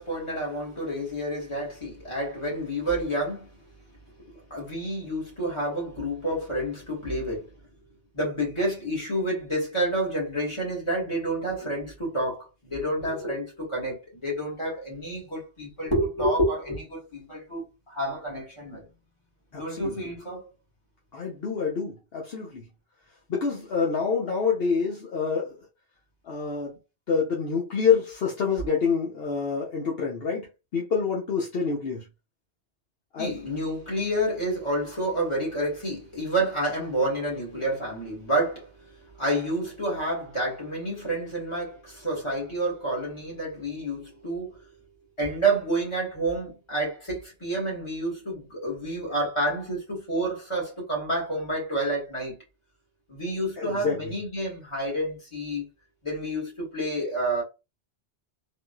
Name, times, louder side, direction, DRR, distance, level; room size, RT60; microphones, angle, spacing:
voice 1, 0.0-3.5 4.3-7.5 8.1-18.9 19.5-20.5 33.2-38.7 39.2-44.6 45.2-52.4 53.1-55.6 56.0-57.4, right 1 dB, 25° left, 1.8 m, -29 dB
voice 2, 19.5-19.9 21.1-22.6 23.3-25.6 26.3-26.8 27.1-32.1 33.1-33.3 53.6-54.0, left 5 dB, 65° left, 0.9 m, -27 dB
3.5 x 2.6 x 2.3 m
omnidirectional pair, 1.1 m